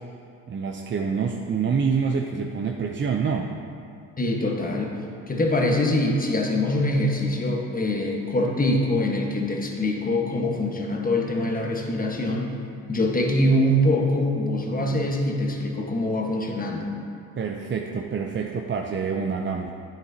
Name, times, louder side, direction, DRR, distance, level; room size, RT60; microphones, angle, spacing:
voice 1, 0.5-3.5 17.4-19.7, right 5 dB, 30° right, 2 dB, 0.5 m, -26 dB
voice 2, 4.2-4.9 5.3-12.5 12.9-16.9, left 1 dB, 25° left, 1 dB, 1.3 m, -24 dB
8.8 x 8.2 x 2.8 m, 2.4 s
supercardioid pair, 70°, 37 cm